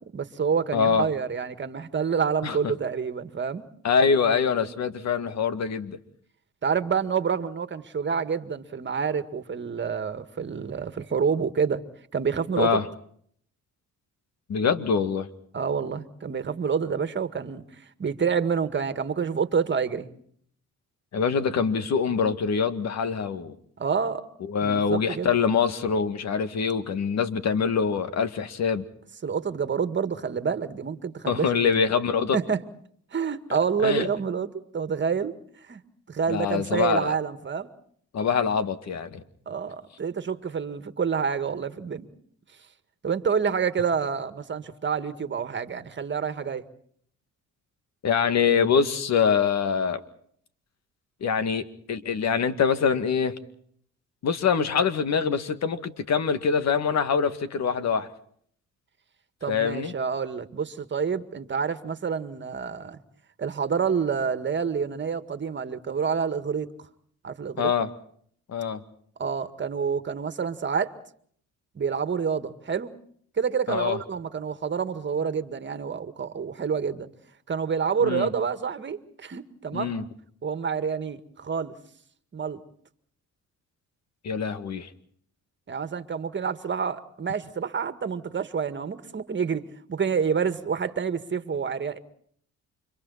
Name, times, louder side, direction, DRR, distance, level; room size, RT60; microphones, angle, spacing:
voice 1, 0.1-3.7 6.6-11.8 12.1-12.8 15.5-17.6 18.0-20.1 23.8-24.3 24.6-25.3 29.2-31.5 32.3-32.6 33.1-35.4 35.7-35.8 36.1-37.7 39.5-42.1 43.0-46.7 59.4-63.0 63.4-66.7 67.2-67.7 69.2-71.0 71.8-72.9 73.4-77.1 77.5-79.9 80.4-81.7 82.3-82.6 85.7-92.0, right 6 dB, 40° right, 11 dB, 1.9 m, -28 dB
voice 2, 0.7-1.1 2.4-2.6 3.8-6.0 12.5-12.9 14.5-15.3 21.1-23.6 24.5-28.8 31.3-32.4 33.8-34.1 36.3-37.1 38.1-39.2 48.0-50.0 51.2-53.4 54.2-58.1 59.5-59.9 67.6-67.9 68.5-68.8 73.7-74.0 78.0-78.3 79.7-80.0 84.2-84.9, left 6 dB, 60° left, 11 dB, 2.1 m, -24 dB
30.0 x 26.0 x 4.2 m, 0.62 s
cardioid pair, 90°, 30 cm